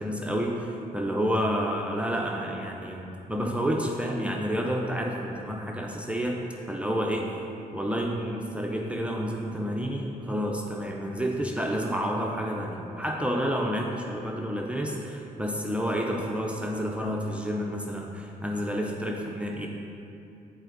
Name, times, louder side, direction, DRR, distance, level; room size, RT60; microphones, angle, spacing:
voice 1, 0.0-6.4 6.7-7.3 7.7-19.7, equal, 5° right, 0 dB, 0.7 m, -29 dB
7.9 x 4.3 x 4.0 m, 2.7 s
cardioid pair, 65°, 16 cm